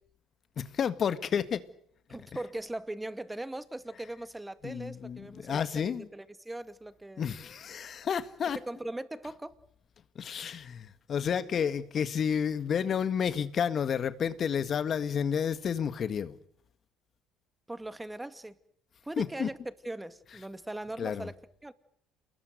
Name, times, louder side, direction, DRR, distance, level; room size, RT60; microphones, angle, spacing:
voice 1, 0.6-1.6 4.6-6.1 7.2-8.6 10.1-16.3 19.2-19.5 21.0-21.3, left 7 dB, 50° left, 1.8 m, -31 dB
voice 2, 2.1-7.3 8.5-9.6 17.7-18.6 19.0-21.4 21.6-21.7, right 1 dB, 10° right, 2.2 m, -40 dB
28.5 x 21.0 x 8.1 m
hypercardioid pair, 65°, 0 cm